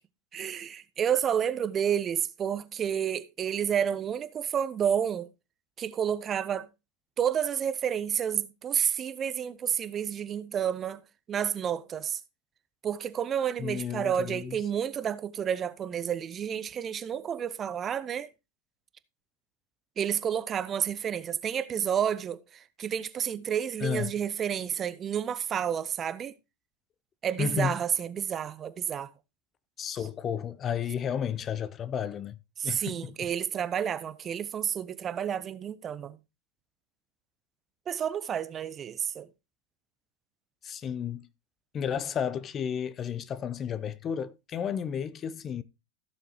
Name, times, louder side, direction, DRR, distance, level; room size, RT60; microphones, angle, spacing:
voice 1, 0.3-5.3 5.8-6.7 7.2-11.0 11.3-12.2 12.8-18.3 20.0-26.3 27.2-29.1 32.6-36.2 37.9-39.3, right 8 dB, 30° right, 0.8 m, -30 dB
voice 2, 13.6-14.5 23.8-24.1 27.4-27.8 29.8-32.4 32.6-33.1 40.6-41.3 41.7-45.6, left 8 dB, 30° left, 0.6 m, -32 dB
15.5 x 6.9 x 3.0 m
figure-of-eight pair, 90°, 0 cm